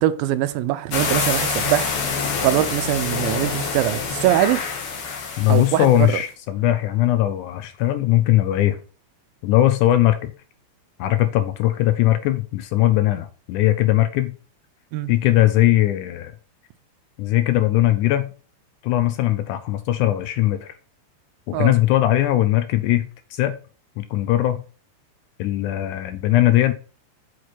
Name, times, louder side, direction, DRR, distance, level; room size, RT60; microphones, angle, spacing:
voice 1, 0.0-4.6 5.5-6.2 14.9-15.1 21.5-21.7, right 13 dB, 90° right, 2.4 m, -22 dB
sound 1, 0.9-6.1, left 5 dB, 55° left, 1.7 m, -26 dB
voice 2, 5.4-8.8 9.4-10.3 11.0-14.3 15.1-16.3 17.2-18.3 18.8-20.7 21.5-23.5 24.0-24.6 25.4-26.7, left 14 dB, 85° left, 1.8 m, -19 dB
6.4 x 4.7 x 4.3 m
omnidirectional pair, 4.1 m